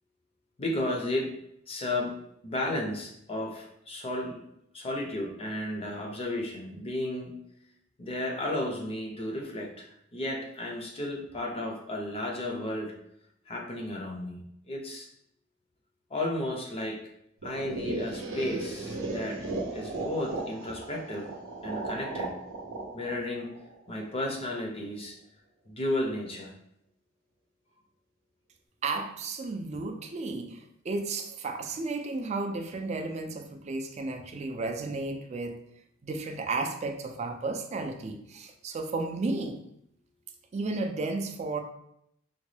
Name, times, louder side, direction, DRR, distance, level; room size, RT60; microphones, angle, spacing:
voice 1, 0.6-1.3 1.7-2.2 2.4-4.4 4.7-7.3 8.0-13.0 13.5-15.1 16.1-17.1 17.4-21.3 21.6-22.3 22.9-23.5 23.9-25.2 25.7-26.5, left 1 dB, 30° left, 1 dB, 0.5 m, -33 dB
sound 1, 17.4-24.3, right 2 dB, 80° right, 0.6 m, -36 dB
voice 2, 28.8-35.6 36.0-39.6 40.5-41.6, right 3 dB, 35° right, 5 dB, 0.4 m, -33 dB
3.8 x 2.2 x 3.2 m, 0.75 s
head